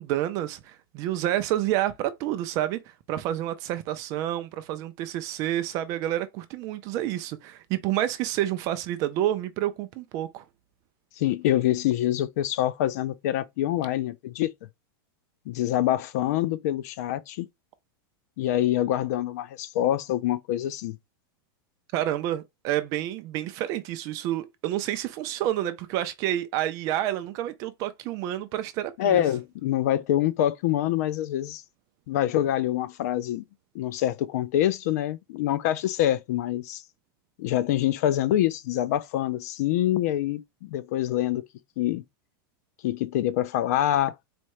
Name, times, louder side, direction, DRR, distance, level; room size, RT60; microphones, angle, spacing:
voice 1, 0.0-2.8 3.1-10.4 21.9-29.2, right 13 dB, 25° right, 0.4 m, -29 dB
voice 2, 11.2-14.5 15.5-17.5 18.4-21.0 29.0-31.6 32.1-33.4 33.7-36.8 37.4-41.4 41.8-42.0 42.8-44.1, left 12 dB, 45° left, 0.4 m, -25 dB
4.2 x 2.2 x 4.6 m
supercardioid pair, 175°, 12 cm